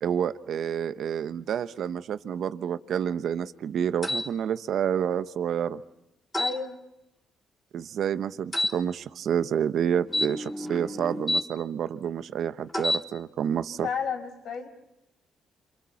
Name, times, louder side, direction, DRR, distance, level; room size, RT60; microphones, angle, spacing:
voice 1, 0.0-5.8 7.7-13.9, right 8 dB, 65° right, 12 dB, 1.0 m, -29 dB
sound 1, 4.0-4.3 6.3-6.6 8.5-8.8 10.1-11.5 12.7-13.1, left 1 dB, 20° left, 3.8 m, -28 dB
voice 2, 6.4-6.8 13.8-14.7, left 6 dB, 70° left, 5 dB, 5.2 m, -31 dB
29.0 x 26.5 x 5.9 m, 0.89 s
cardioid pair, 90°, 0 cm